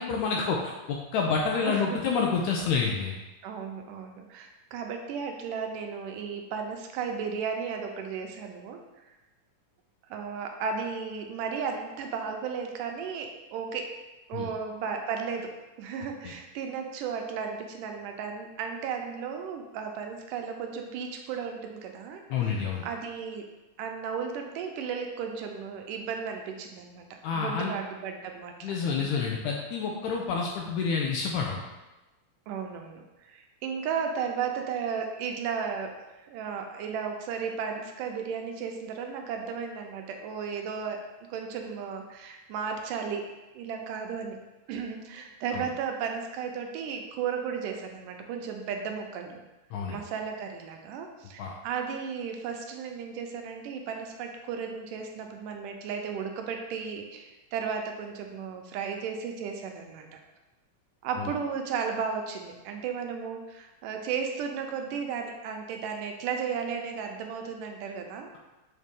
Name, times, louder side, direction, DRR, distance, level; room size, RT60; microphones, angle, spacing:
voice 1, 0.0-3.2 14.3-14.5 16.0-16.3 22.3-22.8 27.2-27.7 28.6-31.6 45.5-45.7 49.7-50.0 51.4-51.5 61.2-61.3, left 5 dB, 80° left, 0 dB, 1.7 m, -29 dB
voice 2, 1.5-2.0 3.4-8.8 10.1-13.9 14.3-15.5 15.8-23.5 23.8-29.2 32.5-41.0 41.3-43.2 43.5-44.4 44.7-49.4 49.9-60.2 61.0-68.3, right 6 dB, 80° right, 3 dB, 2.1 m, -34 dB
6.5 x 4.2 x 3.6 m, 1.1 s
omnidirectional pair, 3.8 m